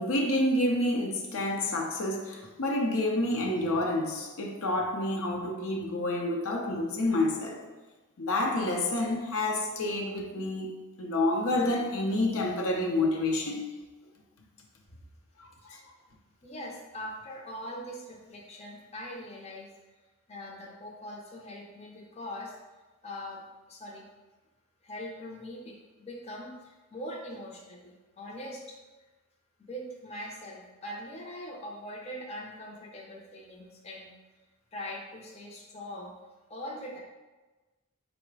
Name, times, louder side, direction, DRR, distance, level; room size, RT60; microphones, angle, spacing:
voice 1, 0.0-7.6 8.2-10.7 11.0-13.6 15.4-15.8, left 1 dB, 70° left, 0.6 m, -28 dB
voice 2, 16.4-19.7 20.3-22.6 23.0-24.1 24.8-28.8 29.7-34.1 34.7-36.1 36.5-37.0, equal, 30° left, 0.6 m, -42 dB
4.7 x 2.1 x 4.6 m
head